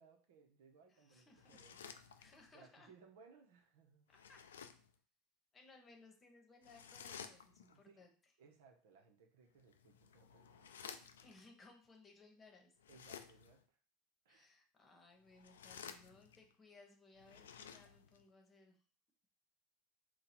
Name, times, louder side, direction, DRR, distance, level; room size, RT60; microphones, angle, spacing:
voice 1, 0.0-2.3 2.5-4.1 7.7-8.1 8.4-11.3 12.9-13.8 14.2-14.5, right 5 dB, 70° right, 4 dB, 0.8 m, -65 dB
voice 2, 0.9-1.6 2.2-2.9 4.1-4.4 5.5-8.1 11.2-12.8 14.3-18.8, left 3 dB, 25° left, 3 dB, 1.1 m, -63 dB
sound 1, 1.4-2.6 4.1-5.0 6.6-7.8 9.6-11.4 12.8-13.6 15.2-16.5 17.2-18.2, left 7 dB, 80° left, 0.3 m, -54 dB
3.9 x 2.3 x 4.4 m, 0.42 s
hypercardioid pair, 85°, 0 cm